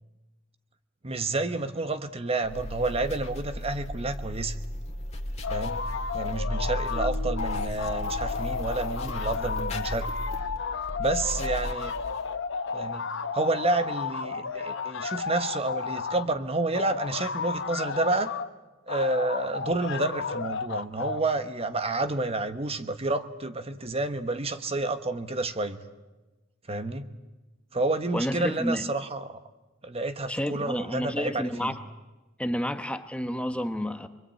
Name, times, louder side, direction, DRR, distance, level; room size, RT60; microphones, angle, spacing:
voice 1, 1.0-4.6 5.5-5.8 6.1-10.1 11.0-11.9 12.7-13.1 13.3-18.3 18.9-25.8 26.7-27.1 27.7-29.4 29.8-31.7, right 2 dB, 30° right, 9 dB, 1.2 m, -29 dB
sound 1, 2.4-12.3, equal, 35° left, 2.4 m, -35 dB
sound 2, 5.4-7.1 7.4-16.3 16.7-18.5 18.9-21.2, left 5 dB, 65° left, 0.9 m, -33 dB
sound 3, 6.9-10.1, left 15 dB, 70° right, 6.5 m, -45 dB
voice 2, 28.1-28.8 30.3-31.8 32.4-34.1, equal, 5° left, 8 dB, 1.0 m, -30 dB
27.0 x 22.5 x 8.8 m, 1.1 s
head